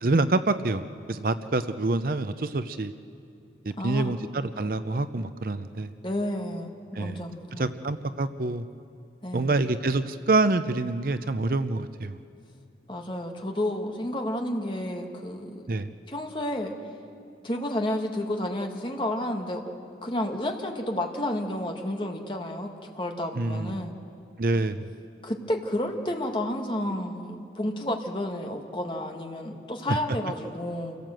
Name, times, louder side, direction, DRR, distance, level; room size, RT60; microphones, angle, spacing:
voice 1, 0.0-2.9 3.8-5.9 6.9-7.2 7.5-8.6 9.3-12.2 15.7-15.9 23.4-23.8 24.4-24.9, right 2 dB, 50° right, 11 dB, 0.6 m, -26 dB
voice 2, 3.8-4.2 6.0-7.7 9.2-9.5 12.9-15.6 16.1-16.7 17.4-19.7 20.0-23.9 25.2-31.0, left 1 dB, 30° left, 2 dB, 1.8 m, -31 dB
28.5 x 17.0 x 7.7 m, 2.5 s
head